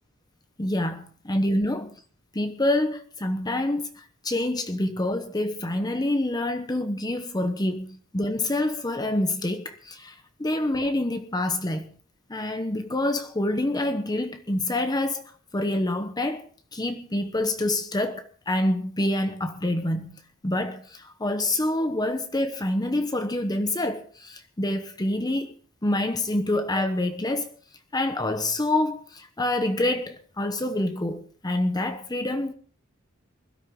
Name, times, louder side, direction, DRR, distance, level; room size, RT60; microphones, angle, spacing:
voice 1, 0.6-2.0 2.3-11.9 12.3-25.6 25.8-27.5 27.9-32.5, left 1 dB, 20° left, 1.0 m, -27 dB
21.0 x 13.0 x 3.8 m
head